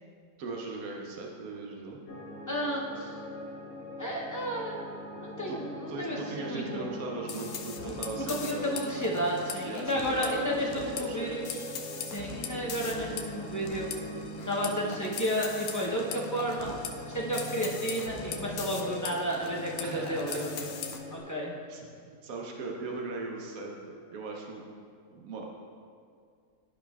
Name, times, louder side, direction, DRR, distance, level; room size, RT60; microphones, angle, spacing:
voice 1, 0.4-2.0 5.5-5.6 5.9-8.7 9.6-11.7 19.8-20.7 21.7-24.6 25.1-25.5, right 3 dB, 70° right, -1 dB, 1.2 m, -39 dB
sound 1, 2.1-21.2, equal, 55° left, 1.7 m, -42 dB
voice 2, 2.5-3.1 4.0-4.8 5.2-6.9 8.3-11.4 12.1-13.9 14.5-16.7 17.1-20.5 21.1-21.5, equal, 20° left, -4 dB, 0.5 m, -32 dB
sound 2, 7.3-21.0, left 6 dB, 75° left, 1.1 m, -41 dB
12.0 x 5.5 x 2.3 m, 2.2 s
omnidirectional pair, 1.6 m